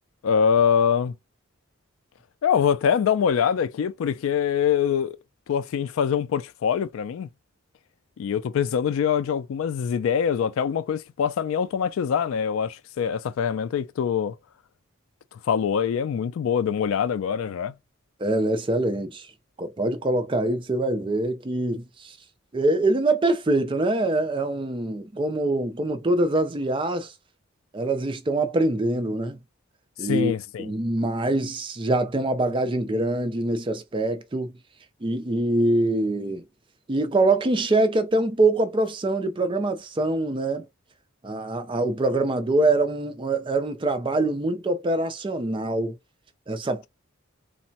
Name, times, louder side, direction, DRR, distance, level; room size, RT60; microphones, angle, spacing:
voice 1, 0.2-1.1 2.4-5.2 5.5-7.3 8.2-14.3 15.5-17.7 30.0-30.7, left 7 dB, 75° left, 0.3 m, -24 dB
voice 2, 18.2-19.3 19.6-22.2 22.5-27.1 27.7-29.4 30.0-30.3 30.6-34.5 35.0-36.4 36.9-40.7 41.2-45.9 46.5-46.9, right 2 dB, 25° right, 0.4 m, -24 dB
3.2 x 2.0 x 2.7 m
head